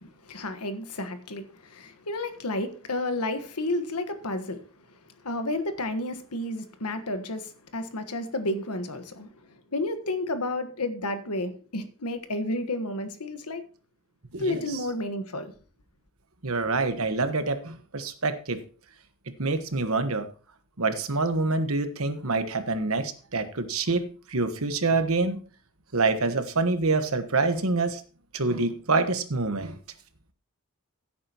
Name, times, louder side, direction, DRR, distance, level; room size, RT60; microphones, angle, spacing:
voice 1, 0.0-4.8 5.2-13.6 14.4-15.5, left 2 dB, 90° left, 1.4 m, -31 dB
voice 2, 14.3-14.6 16.4-18.6 19.4-20.3 20.8-25.4 25.9-28.0 28.3-29.8, right 3 dB, 65° right, 1.3 m, -26 dB
16.0 x 8.6 x 3.0 m
head